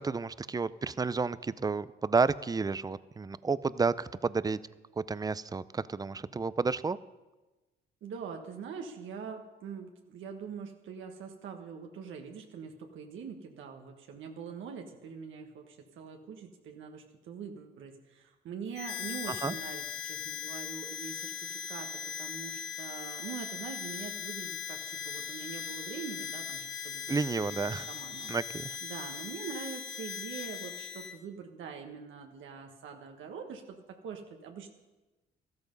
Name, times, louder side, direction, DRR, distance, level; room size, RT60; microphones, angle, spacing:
voice 1, 0.0-4.6 5.0-7.0 19.3-19.5 27.1-27.9 28.3-28.7, right 4 dB, 20° right, 17 dB, 0.5 m, -31 dB
voice 2, 8.0-28.3 28.8-34.7, right 6 dB, 80° right, 3 dB, 1.5 m, -44 dB
Harmonica, 18.7-31.2, left 8 dB, 65° left, 1.3 m, -39 dB
13.5 x 13.0 x 5.3 m, 1.1 s
cardioid pair, 90°, 20 cm